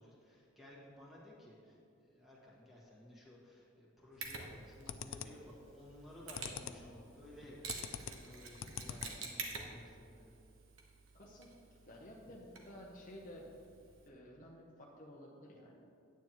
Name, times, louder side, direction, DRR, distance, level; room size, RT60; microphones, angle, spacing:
voice 1, 0.0-10.3, left 1 dB, ahead, -6 dB, 1.7 m, -56 dB
sound 1, 4.1-4.5 4.9-5.5 6.0-6.9 7.2-9.4, left 8 dB, 70° left, 0.4 m, -45 dB
Mechanisms, 4.2-14.1, right 4 dB, 80° right, 1.1 m, -50 dB
voice 2, 11.1-11.5 11.9-13.5 14.1-15.8, equal, 40° left, -1 dB, 0.8 m, -53 dB
9.4 x 9.2 x 3.0 m, 2.5 s
head